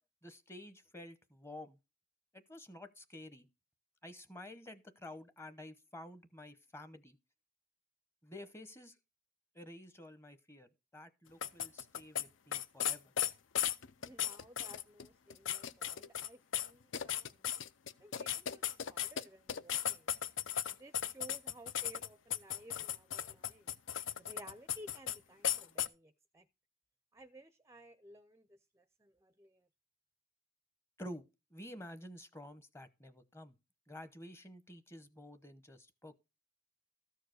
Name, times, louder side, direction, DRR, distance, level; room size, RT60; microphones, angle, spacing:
voice 1, 0.2-1.8 2.3-3.5 4.0-7.2 8.2-9.0 9.5-13.1 31.0-31.2 31.5-33.6 33.9-36.1, left 1 dB, 15° left, 0.9 m, -51 dB
sound 1, 11.4-12.2 12.5-16.3 16.5-19.2 19.5-25.2 25.4-25.9, left 10 dB, 70° left, 0.5 m, -36 dB
voice 2, 14.0-17.5 18.0-20.1 20.7-23.7 24.2-26.5 27.1-29.7, right 1 dB, 15° right, 0.5 m, -57 dB
13.5 x 4.7 x 6.3 m
head